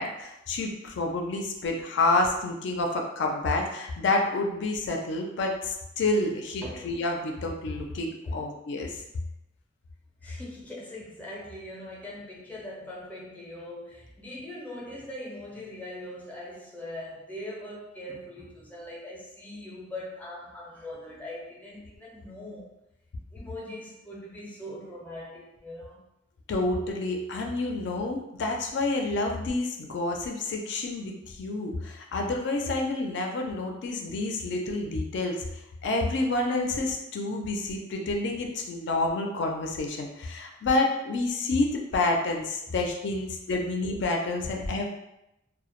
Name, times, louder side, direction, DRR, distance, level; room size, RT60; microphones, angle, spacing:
voice 1, 0.0-8.9 26.5-35.4 35.8-44.9, left 2 dB, 65° left, 2 dB, 0.4 m, -29 dB
voice 2, 6.6-7.0 8.2-8.5 10.2-22.7 23.3-26.0, left 1 dB, 10° left, -4 dB, 0.5 m, -41 dB
2.1 x 2.0 x 2.9 m, 0.88 s
head